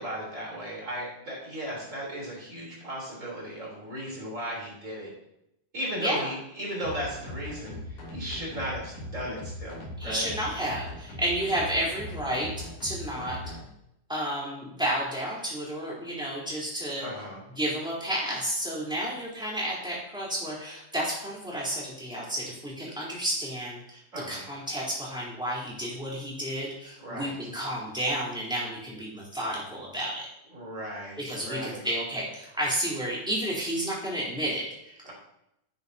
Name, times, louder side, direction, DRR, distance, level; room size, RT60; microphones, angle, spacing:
voice 1, 0.0-5.1 5.7-10.3 17.0-17.4 24.1-24.5 27.0-27.4 30.5-31.8 35.0-35.1, equal, 25° right, -4 dB, 3.8 m, -36 dB
voice 2, 6.0-6.3 10.0-12.5 12.8-13.4 14.1-17.0 17.6-24.0 24.3-30.3 31.2-35.0, right 1 dB, ahead, -6 dB, 3.4 m, -31 dB
sound 1, 6.8-13.6, left 1 dB, 75° left, 4.4 m, -39 dB
11.0 x 9.6 x 2.8 m, 0.80 s
omnidirectional pair, 3.5 m